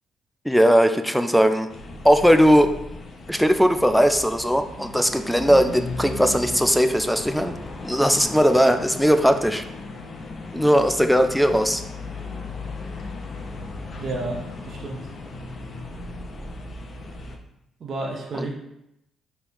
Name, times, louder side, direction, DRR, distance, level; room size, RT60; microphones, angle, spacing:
voice 1, 0.5-1.7 2.0-2.7 3.3-7.5 7.8-9.6 10.5-11.8 18.3-18.5, equal, ahead, 8 dB, 0.4 m, -18 dB
sound 1, 1.7-17.4, left 3 dB, 45° left, 0.6 m, -36 dB
voice 2, 14.0-15.0 17.8-18.5, right 2 dB, 50° right, -1 dB, 0.8 m, -31 dB
5.3 x 3.3 x 3.0 m, 0.82 s
cardioid pair, 90°, 0 cm